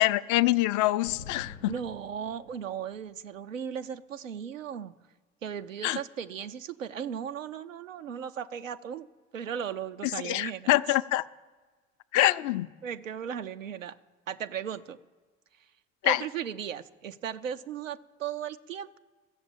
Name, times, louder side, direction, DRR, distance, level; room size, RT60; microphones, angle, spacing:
voice 1, 0.0-1.7 5.8-6.0 10.0-11.2 12.1-12.7 16.0-16.2, left 16 dB, 50° left, 0.5 m, -25 dB
sound 1, 1.1-3.0, left 4 dB, 90° left, 0.8 m, -47 dB
voice 2, 1.7-4.9 5.4-9.1 9.3-11.0 12.8-13.9 14.3-15.0 16.0-19.0, right 8 dB, 85° right, 0.5 m, -36 dB
14.0 x 7.2 x 8.7 m
figure-of-eight pair, 55°, 38 cm